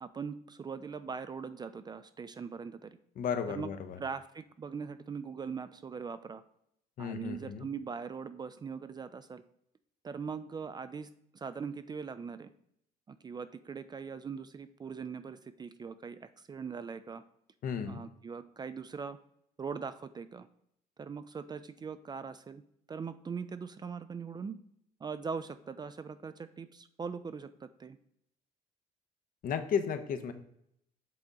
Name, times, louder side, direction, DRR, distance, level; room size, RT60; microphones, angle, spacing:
voice 1, 0.0-3.0 3.5-3.7 4.0-6.4 7.0-9.4 10.0-12.5 13.1-17.2 17.8-19.2 19.6-20.5 21.0-22.6 22.9-24.6 25.0-28.0, right 5 dB, 25° right, 12 dB, 0.3 m, -41 dB
voice 2, 3.2-4.0 7.0-7.7 17.6-18.0 29.4-30.3, left 7 dB, 55° left, 9 dB, 0.7 m, -34 dB
7.7 x 3.5 x 3.9 m, 0.73 s
cardioid pair, 110°, 17 cm